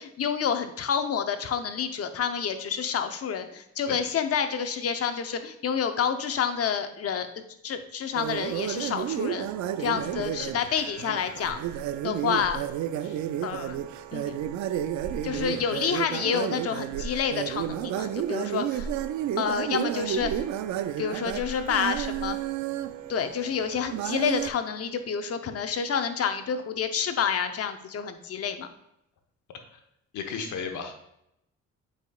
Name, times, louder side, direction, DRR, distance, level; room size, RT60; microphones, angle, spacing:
voice 1, 0.0-9.5 9.8-11.6 12.0-12.6 13.4-13.8 14.1-14.4 15.2-18.9 19.4-20.4 21.0-22.4 23.1-28.7, left 7 dB, 50° left, 8 dB, 0.7 m, -29 dB
voice 2, 4.6-5.1 9.8-10.3 13.0-13.2 15.2-15.7 29.7-29.8 30.1-31.0, left 6 dB, 80° left, 5 dB, 1.1 m, -37 dB
sound 1, 8.1-24.5, right 10 dB, 75° right, 0.5 m, -31 dB
8.1 x 5.0 x 2.3 m, 0.81 s
cardioid pair, 90°, 30 cm